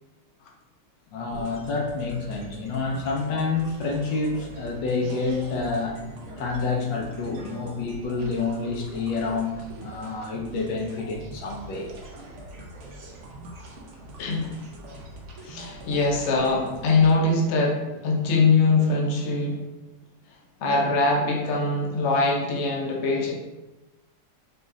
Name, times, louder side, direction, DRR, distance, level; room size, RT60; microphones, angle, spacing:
voice 1, 1.1-6.0 6.4-11.9, left 4 dB, 85° left, 1 dB, 1.4 m, -28 dB
sound 1, 1.3-17.1, right 1 dB, 55° right, 0.8 m, -43 dB
voice 2, 14.2-14.5 15.4-19.6 20.6-23.3, left 3 dB, 55° left, -1 dB, 1.0 m, -22 dB
5.3 x 2.4 x 3.7 m, 1.1 s
omnidirectional pair, 1.9 m